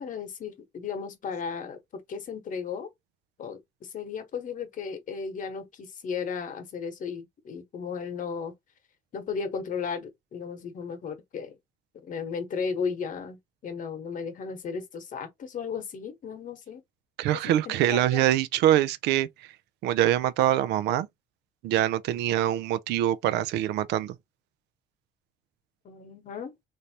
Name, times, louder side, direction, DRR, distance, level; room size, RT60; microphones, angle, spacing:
voice 1, 0.0-2.9 3.4-8.5 9.1-11.6 12.0-16.8 17.6-18.2 25.8-26.5, left 6 dB, 50° left, 1.1 m, -35 dB
voice 2, 17.2-19.5 19.8-21.1 21.6-24.2, right 12 dB, 80° right, 0.4 m, -24 dB
3.3 x 2.6 x 2.7 m
cardioid pair, 110°, 17 cm